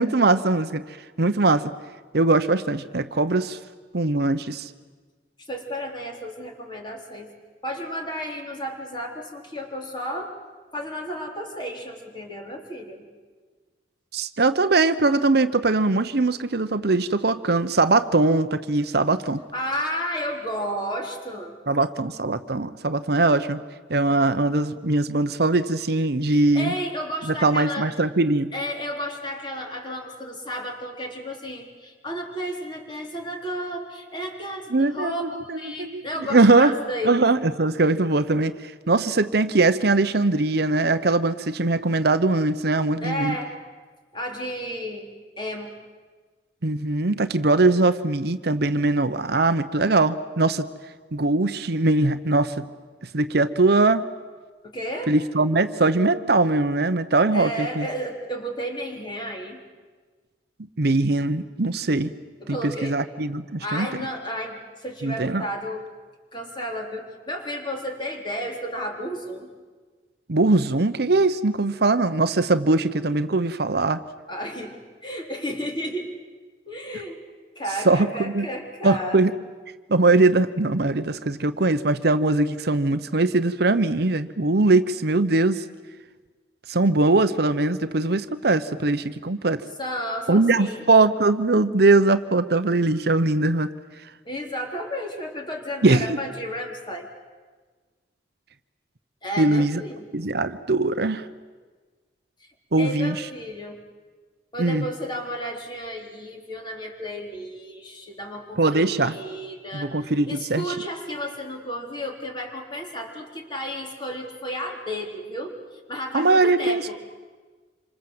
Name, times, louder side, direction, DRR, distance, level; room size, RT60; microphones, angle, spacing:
voice 1, 0.0-1.7 2.1-3.6 3.9-4.7 14.1-19.4 21.7-23.6 23.9-26.7 27.4-28.5 34.7-36.0 36.3-36.7 37.0-43.4 46.6-50.7 51.1-52.7 53.1-54.1 55.1-57.9 60.8-62.1 62.5-63.9 65.0-65.4 70.3-74.0 77.8-78.5 78.8-79.3 79.9-85.6 86.7-89.6 90.3-93.7 95.8-96.2 99.4-99.8 100.1-101.3 102.7-103.1 104.6-104.8 108.6-109.1 109.7-110.6 116.1-116.9, right 2 dB, 60° right, 11 dB, 0.9 m, -21 dB
voice 2, 5.5-7.3 7.6-10.3 10.7-13.0 19.5-21.5 26.5-27.9 28.5-37.2 43.0-43.6 44.1-45.7 54.6-55.1 57.3-59.6 62.4-62.9 63.6-65.8 66.3-69.5 74.3-76.1 76.7-77.2 77.6-79.2 89.8-90.8 94.3-97.1 99.2-100.1 102.4-102.5 102.8-103.8 104.5-116.9, equal, 25° left, 2 dB, 3.6 m, -32 dB
27.5 x 25.5 x 7.9 m, 1.4 s
head